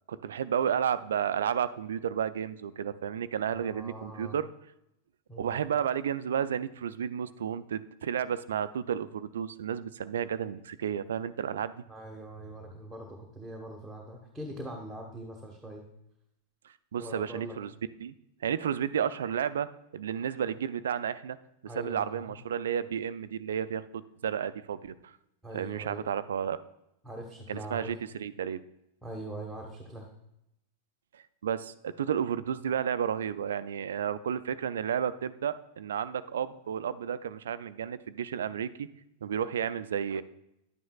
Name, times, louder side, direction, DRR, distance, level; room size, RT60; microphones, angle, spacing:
voice 1, 0.1-4.4 5.4-11.8 16.9-17.7 18.0-18.1 18.4-19.7 19.9-21.4 21.8-25.1 25.5-26.6 27.5-28.6 31.4-38.9 39.2-40.2, right 8 dB, 65° right, 15 dB, 0.4 m, -32 dB
voice 2, 3.5-4.4 5.3-5.5 11.9-15.8 17.0-17.6 21.7-22.4 25.4-26.0 27.0-27.9 29.0-30.1, right 1 dB, ahead, -2 dB, 1.2 m, -42 dB
10.5 x 9.2 x 2.3 m, 0.82 s
figure-of-eight pair, 90°, 0 cm